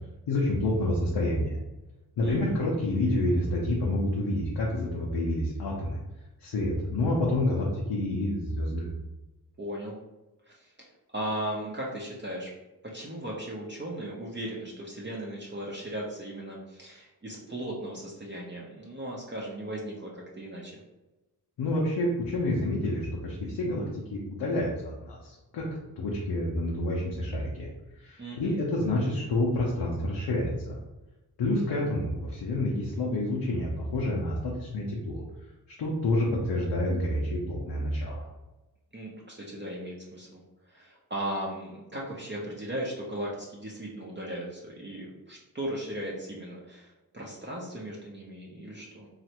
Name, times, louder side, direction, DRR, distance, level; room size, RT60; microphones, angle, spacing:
voice 1, 0.3-1.6 2.2-6.0 6.4-8.9 21.6-23.9 24.1-25.7 26.0-27.7 28.0-30.8 31.4-35.2 35.8-38.2, left 1 dB, 85° left, -4 dB, 0.7 m, -28 dB
voice 2, 2.2-2.6 9.6-10.0 10.5-10.9 11.1-12.5 12.8-20.8 28.2-28.6 38.9-40.4 40.7-49.1, right 1 dB, 25° right, -4 dB, 0.7 m, -37 dB
3.1 x 2.4 x 2.9 m, 1.0 s
cardioid pair, 50°, 41 cm